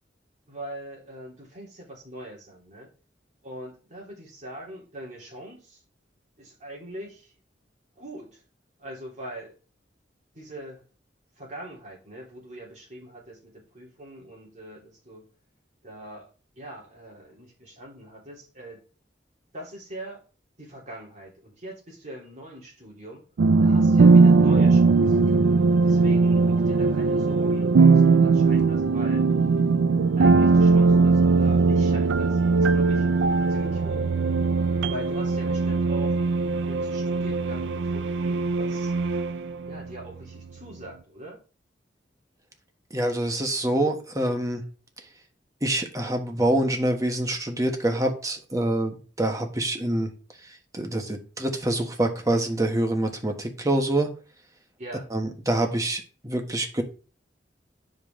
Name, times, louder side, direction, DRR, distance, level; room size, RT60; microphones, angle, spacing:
voice 1, 0.5-2.9 3.4-5.8 6.4-7.3 8.0-8.4 8.8-9.5 10.3-10.8 11.4-15.3 15.8-16.3 16.5-18.8 19.5-20.2 20.6-23.2 23.6-25.2 25.8-29.3 30.1-33.1 33.5-34.1 34.9-36.2 36.6-38.9 39.6-41.4 54.8-55.1, right 1 dB, 40° right, -3 dB, 3.4 m, -42 dB
sound 1, 23.4-39.9, right 4 dB, 85° right, 0.4 m, -20 dB
voice 2, 42.9-44.6 45.6-50.1 50.4-54.1 55.1-56.8, right 1 dB, 20° right, 4 dB, 1.3 m, -26 dB
9.4 x 5.3 x 3.7 m, 0.36 s
head